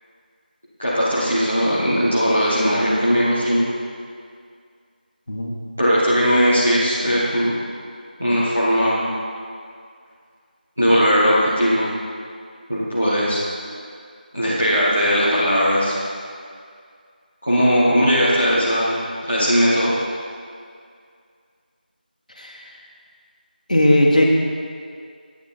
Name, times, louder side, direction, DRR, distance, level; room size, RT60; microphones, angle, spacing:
voice 1, 0.8-3.7 5.8-7.5 8.2-9.0 10.8-11.8 12.7-13.4 14.3-16.0 17.4-19.0 19.3-19.9, equal, 5° right, -12 dB, 0.4 m, -18 dB
voice 2, 22.4-22.7 23.7-24.2, left 1 dB, 50° left, -1 dB, 1.6 m, -17 dB
11.0 x 8.6 x 4.4 m, 2.2 s
figure-of-eight pair, 170°, 5 cm